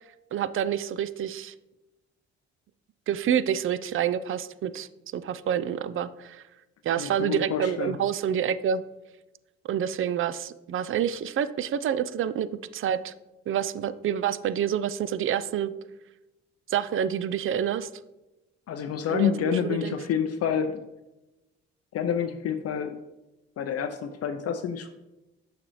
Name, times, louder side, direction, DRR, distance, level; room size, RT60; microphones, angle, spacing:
voice 1, 0.3-1.5 3.1-4.9 5.1-6.4 6.8-8.8 9.7-12.5 12.7-13.1 13.5-15.7 16.7-17.9 19.1-19.3 19.6-20.0, right 9 dB, 45° right, 14 dB, 0.4 m, -27 dB
voice 2, 7.0-8.0 18.7-20.8 21.9-23.0 23.6-24.9, left 7 dB, 55° left, 7 dB, 0.5 m, -28 dB
6.5 x 5.0 x 3.0 m, 1.0 s
supercardioid pair, 55°, 30 cm